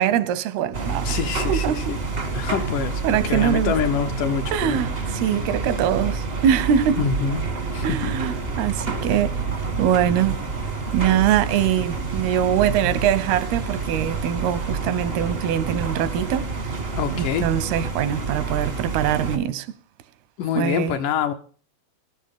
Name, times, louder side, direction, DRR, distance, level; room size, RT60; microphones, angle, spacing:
voice 1, 0.0-1.1 1.5-1.8 3.0-3.8 4.5-7.0 7.8-9.4 9.8-10.4 10.9-16.5 17.1-19.7 20.6-21.0, right 10 dB, 85° right, 2.8 m, -23 dB
sound 1, 0.7-19.4, right 4 dB, 65° right, 0.5 m, -28 dB
voice 2, 1.0-2.0 2.3-4.8 7.0-7.4 7.7-8.2 17.0-17.5 20.4-21.3, left 7 dB, 75° left, 1.9 m, -26 dB
17.5 x 13.0 x 3.7 m
omnidirectional pair, 4.4 m